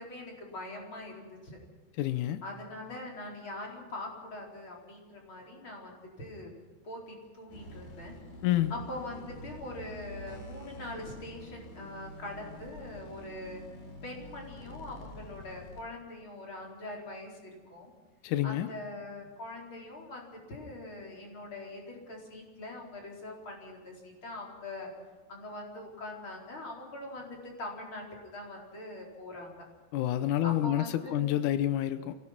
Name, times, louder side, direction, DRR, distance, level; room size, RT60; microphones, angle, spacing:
voice 1, 0.0-1.6 2.4-6.5 6.8-8.1 8.7-13.6 14.0-17.9 18.4-24.9 25.3-28.1 28.3-29.6 30.4-31.3, left 2 dB, 30° left, -1 dB, 4.8 m, -43 dB
voice 2, 2.0-2.4 8.4-8.7 18.2-18.7 29.9-32.2, left 13 dB, 85° left, 11 dB, 1.7 m, -28 dB
sound 1, 7.5-15.8, left 1 dB, 60° left, 4.9 m, -47 dB
25.5 x 17.5 x 5.9 m, 1.4 s
omnidirectional pair, 4.7 m